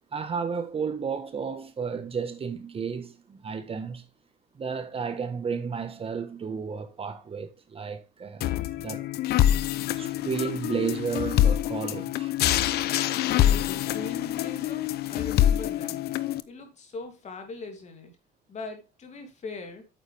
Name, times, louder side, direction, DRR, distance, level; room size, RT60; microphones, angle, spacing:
voice 1, 0.1-4.1 4.5-8.5 8.7-9.1 10.0-12.3, right 6 dB, 35° right, 1.3 m, -32 dB
sound 1, 8.4-16.4, left 12 dB, 70° left, 0.7 m, -25 dB
voice 2, 13.2-16.0 16.5-18.1 18.5-19.9, left 4 dB, 45° left, 2.8 m, -40 dB
9.1 x 7.4 x 3.4 m
cardioid pair, 110°, 17 cm